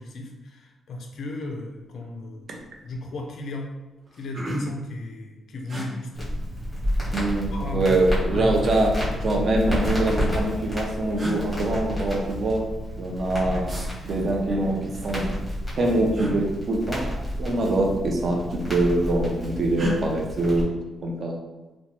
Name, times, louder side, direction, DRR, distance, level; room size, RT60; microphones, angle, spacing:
voice 1, 0.0-2.5 2.8-3.7 4.1-6.4 7.5-8.0 8.3-8.6 9.1-9.4 13.4-13.7, left 2 dB, 60° left, 2 dB, 0.3 m, -35 dB
sound 1, 1.9-2.2 2.6-3.0 3.6-3.7 4.0-4.9 5.7-5.9 7.1-7.8 8.9-9.8 10.7-10.8 11.2-11.4 13.7-13.9 16.1-16.4 17.7-18.0 18.3-18.9 19.7-20.0, right 1 dB, 65° right, 0.9 m, -34 dB
Crackle, 6.1-20.6, equal, 5° left, 0.9 m, -30 dB
voice 2, 7.1-8.9 9.2-12.6 13.0-13.6 14.0-15.3 15.8-17.1 17.4-20.7 21.0-21.4, right 2 dB, 40° right, 0 dB, 0.4 m, -24 dB
2.9 x 2.1 x 2.8 m, 1.1 s
wide cardioid pair, 180°, 0 cm